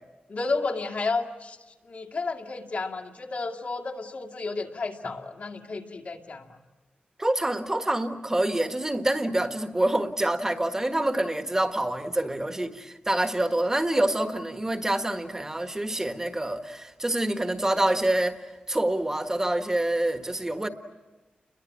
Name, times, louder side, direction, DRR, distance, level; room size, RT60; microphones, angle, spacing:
voice 1, 0.3-1.6 1.9-6.6, left 3 dB, 55° left, 2.3 m, -32 dB
voice 2, 7.2-18.4 18.7-20.7, right 1 dB, 15° right, 1.5 m, -26 dB
30.0 x 22.5 x 8.6 m
wide cardioid pair, 120°, 3 cm